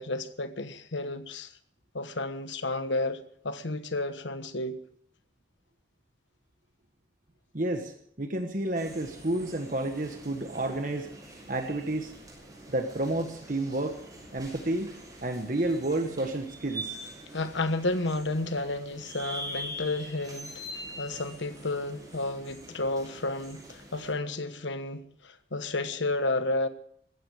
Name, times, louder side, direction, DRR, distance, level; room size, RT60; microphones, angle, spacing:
voice 1, 0.0-1.5 1.9-4.8 17.3-20.6 21.0-26.7, left 2 dB, 80° left, 1.3 m, -31 dB
voice 2, 7.5-11.1 11.5-12.1 12.7-14.0 14.3-14.9 15.2-17.0, right 1 dB, 45° right, 1.3 m, -30 dB
sound 1, 8.7-24.1, right 1 dB, 20° right, 6.3 m, -44 dB
16.0 x 14.5 x 4.9 m
head